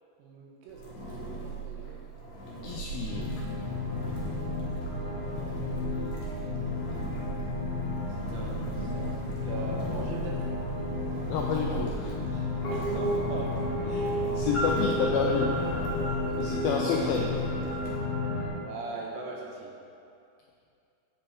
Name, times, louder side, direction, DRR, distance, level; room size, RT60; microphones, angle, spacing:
voice 1, 0.2-2.0 5.1-6.6 8.3-10.5 12.7-13.6 18.7-19.7, right 3 dB, 85° right, -1 dB, 3.1 m, -41 dB
Engine, 0.7-18.0, right 4 dB, 70° left, 1.7 m, -42 dB
voice 2, 2.6-3.3 11.3-12.4 13.9-15.6 16.3-17.4, left 5 dB, 90° left, 0 dB, 2.1 m, -30 dB
sound 1, 2.6-16.6, right 3 dB, 50° right, 2.3 m, -41 dB
sound 2, 3.0-18.5, left 2 dB, 45° left, 2.1 m, -32 dB
7.7 x 5.3 x 4.4 m, 2.5 s
omnidirectional pair, 4.8 m